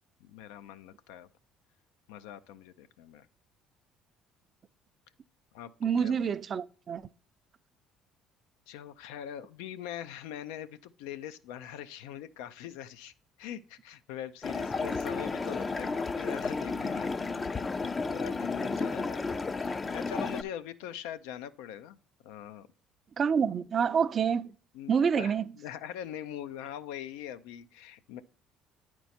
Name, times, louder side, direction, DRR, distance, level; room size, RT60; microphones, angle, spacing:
voice 1, 0.2-1.3 2.1-3.3 5.5-6.3 8.7-13.1 13.4-17.3 17.8-22.7 24.7-28.2, left 10 dB, 85° left, 0.4 m, -42 dB
voice 2, 5.8-7.1 23.2-24.5 24.9-25.4, right 7 dB, 45° right, 0.4 m, -27 dB
sound 1, 14.4-20.4, left 4 dB, 25° left, 0.4 m, -32 dB
9.4 x 4.5 x 4.1 m
supercardioid pair, 85°, 0 cm